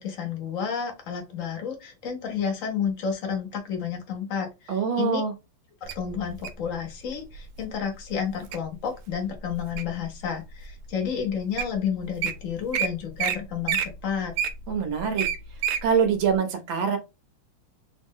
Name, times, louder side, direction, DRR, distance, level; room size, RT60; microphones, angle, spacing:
voice 1, 0.0-5.2 5.8-14.3, left 7 dB, 65° left, 2 dB, 0.7 m, -31 dB
voice 2, 4.7-5.3 14.7-15.2 15.8-17.0, right 6 dB, 70° right, 5 dB, 1.5 m, -24 dB
Wild animals, 5.9-6.6 7.3-7.6 8.1-8.6 9.1-10.0 10.6-10.7 11.3-11.4 11.6-11.7 12.0-12.3 12.7-12.9 13.2-13.4 13.6-15.8 16.3-16.4, right 8 dB, 85° right, 1.5 m, -27 dB
3.7 x 2.1 x 3.5 m, 0.25 s
omnidirectional pair, 2.4 m